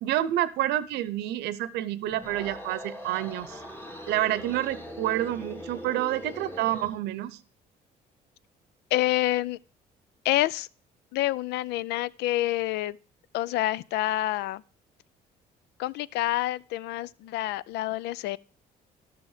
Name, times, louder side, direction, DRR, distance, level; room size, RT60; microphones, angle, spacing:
voice 1, 0.0-3.6 4.1-7.4, right 13 dB, 80° right, 0.7 m, -28 dB
sound 1, 2.1-7.0, equal, 15° left, 2.1 m, -41 dB
voice 2, 8.9-9.6 10.2-10.7 11.1-13.0 13.3-14.6 15.8-18.4, left 15 dB, 80° left, 0.4 m, -27 dB
12.5 x 6.2 x 4.9 m
cardioid pair, 110°, 17 cm